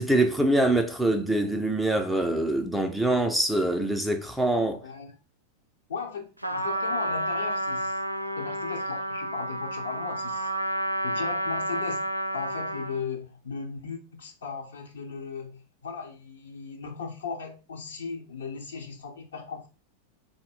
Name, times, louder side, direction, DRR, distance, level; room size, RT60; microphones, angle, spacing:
voice 1, 0.0-4.8, right 1 dB, ahead, 0.4 m, -24 dB
voice 2, 5.9-8.0 8.4-10.5 11.0-12.0 12.3-19.7, left 5 dB, 70° left, 0.9 m, -37 dB
Trumpet, 6.4-13.0, equal, 85° right, 0.4 m, -30 dB
4.0 x 2.1 x 3.8 m
figure-of-eight pair, 90°, 0 cm